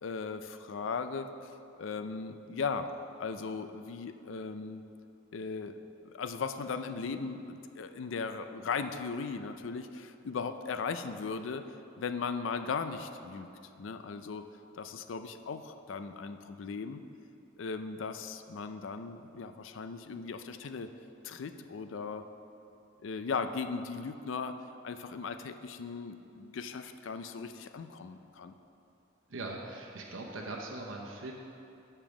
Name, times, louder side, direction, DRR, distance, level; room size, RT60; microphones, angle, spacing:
voice 1, 0.0-1.5 1.8-2.9 3.2-4.8 5.3-5.7 6.0-11.6 12.0-13.5 13.8-14.5 14.7-17.0 17.6-20.9 21.2-22.3 23.0-24.6 24.8-28.5, left 5 dB, 70° left, 9 dB, 0.4 m, -37 dB
voice 2, 29.3-31.3, right 2 dB, 85° right, 0 dB, 0.8 m, -40 dB
6.9 x 5.5 x 6.1 m, 2.7 s
head